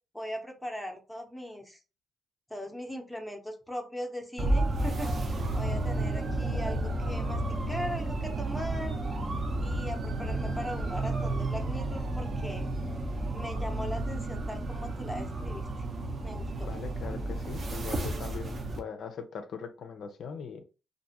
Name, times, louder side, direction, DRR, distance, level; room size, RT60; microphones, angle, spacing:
voice 1, 0.1-1.8 2.5-9.0 9.6-12.7 13.3-15.7 16.2-16.7, left 1 dB, ahead, 2 dB, 0.6 m, -39 dB
sound 1, 4.4-18.8, right 2 dB, 45° right, 0.6 m, -32 dB
voice 2, 16.6-20.6, left 6 dB, 65° left, 7 dB, 0.4 m, -40 dB
2.5 x 2.3 x 2.8 m, 0.33 s
cardioid pair, 90°, 0 cm